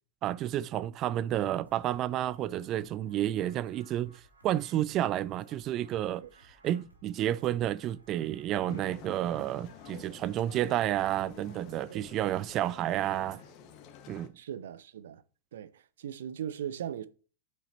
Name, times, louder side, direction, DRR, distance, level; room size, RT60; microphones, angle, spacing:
voice 1, 0.2-13.4 14.1-14.3, right 12 dB, 35° right, 0.4 m, -31 dB
sound 1, 1.3-13.5, right 1 dB, 80° right, 2.9 m, -60 dB
sound 2, 8.7-14.3, left 8 dB, 40° left, 1.4 m, -50 dB
voice 2, 14.4-15.2 15.5-17.1, right 9 dB, 60° right, 0.7 m, -39 dB
10.5 x 8.7 x 2.8 m
figure-of-eight pair, 90°, 0 cm